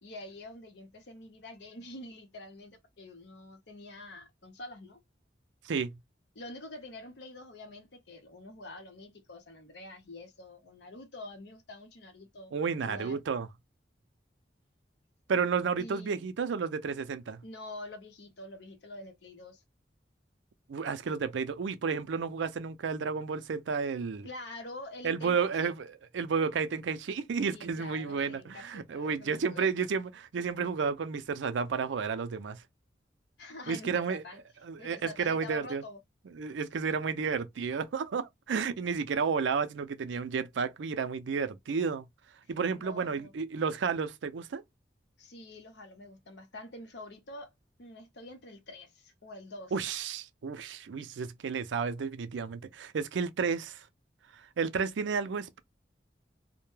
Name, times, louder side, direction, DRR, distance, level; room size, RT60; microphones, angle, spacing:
voice 1, 0.0-5.0 6.3-12.5 12.8-13.2 15.8-16.2 17.4-19.6 24.2-25.7 27.5-29.7 33.4-34.4 34.8-36.0 42.7-43.3 45.2-47.5 47.8-49.7, left 2 dB, 70° left, 0.7 m, -46 dB
voice 2, 5.6-6.0 12.5-13.5 15.3-17.4 20.7-24.3 25.0-32.6 33.7-34.2 34.6-35.8 36.4-42.0 42.5-44.6 49.7-53.9 54.3-55.6, right 5 dB, 85° right, 0.4 m, -32 dB
2.2 x 2.1 x 3.1 m
head